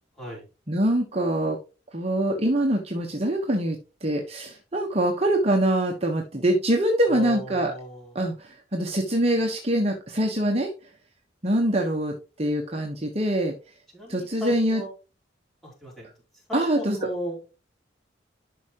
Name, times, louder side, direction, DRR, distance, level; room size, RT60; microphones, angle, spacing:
voice 1, 0.7-1.6 1.9-7.7 8.1-10.7 11.4-13.5 14.1-14.8 16.5-17.1, right 1 dB, 35° right, 1 dB, 1.2 m, -24 dB
voice 2, 7.1-8.1 13.9-14.9 15.6-16.1 16.5-17.4, equal, ahead, -4 dB, 4.4 m, -36 dB
11.5 x 5.6 x 3.0 m, 0.31 s
head